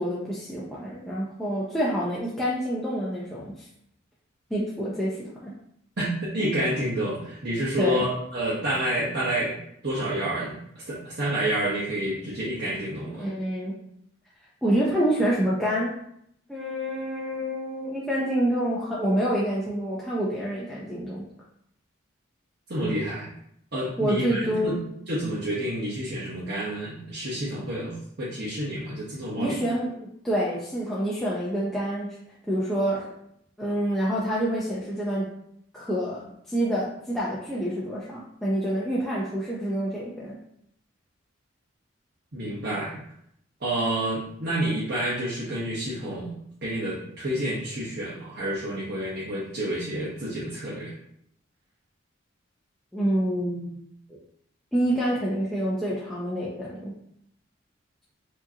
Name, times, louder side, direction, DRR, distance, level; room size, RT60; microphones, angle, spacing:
voice 1, 0.0-3.7 4.5-5.5 7.8-8.0 13.0-13.7 14.6-15.9 16.5-21.2 24.0-24.8 29.4-29.9 30.2-32.1 32.5-33.1 33.6-35.3 35.7-40.4 52.9-53.9 54.7-56.9, equal, ahead, -8 dB, 0.6 m, -27 dB
voice 2, 6.0-9.6 9.8-10.6 10.9-13.2 22.7-23.3 23.7-24.7 25.1-29.6 42.3-43.0 43.6-46.3 46.6-50.9, right 1 dB, 50° right, -8 dB, 0.9 m, -29 dB
4.8 x 2.8 x 2.8 m, 0.72 s
head